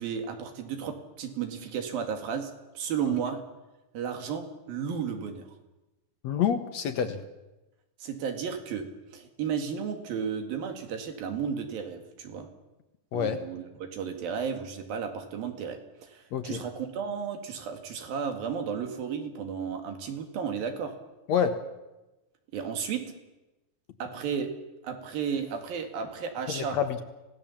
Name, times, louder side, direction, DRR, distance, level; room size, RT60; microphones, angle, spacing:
voice 1, 0.0-2.5 2.8-3.4 3.9-5.5 8.0-12.5 13.1-20.9 22.5-23.1 24.0-24.5 24.8-26.8, right 7 dB, 90° right, 5 dB, 3.9 m, -33 dB
voice 2, 6.2-7.2 13.1-13.4 16.3-16.6 21.3-21.5 26.5-27.0, left 8 dB, 65° left, 8 dB, 2.0 m, -27 dB
26.5 x 17.0 x 7.2 m, 1.0 s
omnidirectional pair, 4.0 m